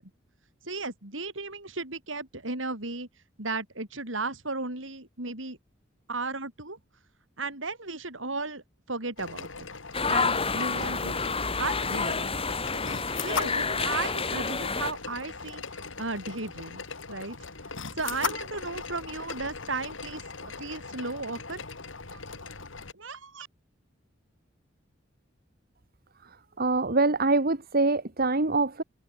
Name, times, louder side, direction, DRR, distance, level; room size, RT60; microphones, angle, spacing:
voice 1, 0.6-3.1 3.4-5.6 6.1-6.8 7.4-9.7 10.1-11.2 11.6-12.4 13.2-15.6 16.0-16.8 17.1-17.4 17.9-21.6 22.1-22.4 22.9-23.5, right 3 dB, 85° right, 6.8 m, -35 dB
sound 1, 9.2-22.9, left 5 dB, 85° left, 2.7 m, -39 dB
sound 2, 9.9-14.9, left 4 dB, 30° left, 3.1 m, -29 dB
voice 2, 26.6-28.8, right 3 dB, 50° right, 1.9 m, -24 dB
head